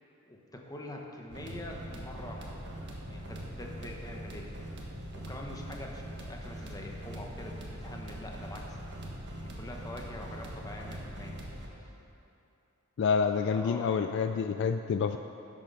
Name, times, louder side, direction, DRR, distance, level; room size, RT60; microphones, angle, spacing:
voice 1, 0.3-2.6 3.1-4.5 5.1-8.8 9.4-11.3 11.8-11.9 13.5-14.1, left 1 dB, 15° left, 0 dB, 1.1 m, -44 dB
sound 1, 1.3-11.7, right 1 dB, 55° right, 1.6 m, -42 dB
voice 2, 13.0-15.2, left 6 dB, 55° left, 8 dB, 0.3 m, -28 dB
11.5 x 7.6 x 5.5 m, 2.8 s
head